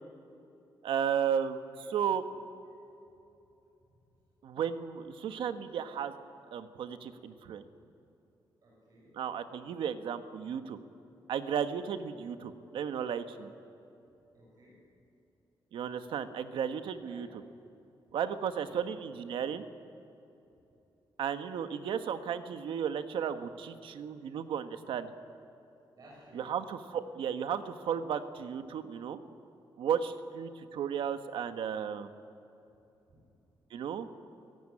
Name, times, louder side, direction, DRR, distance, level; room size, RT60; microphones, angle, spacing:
voice 1, 0.8-2.2 4.4-6.1 6.5-7.6 9.1-10.8 11.3-13.5 15.7-17.4 18.1-19.6 21.2-25.1 26.3-29.2 29.8-32.1 33.7-34.1, right 8 dB, 85° right, 9 dB, 1.4 m, -34 dB
voice 2, 8.6-9.1 14.3-14.8 17.0-17.2 18.6-18.8 25.9-26.5 33.1-33.2, right 1 dB, 45° right, -5 dB, 6.6 m, -57 dB
29.0 x 16.5 x 9.9 m, 2.9 s
wide cardioid pair, 165°, 8 cm